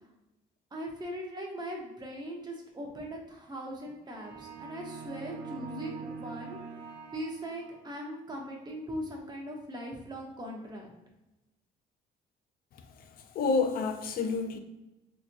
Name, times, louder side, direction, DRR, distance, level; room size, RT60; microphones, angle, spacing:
voice 1, 0.7-6.6 7.1-10.9, equal, 25° right, 0.9 m, -40 dB
sound 1, 4.1-8.1, right 6 dB, 60° right, 0.5 m, -44 dB
voice 2, 12.7-14.6, left 4 dB, 60° left, 0.5 m, -30 dB
4.1 x 2.9 x 2.6 m
cardioid pair, 110°, 17 cm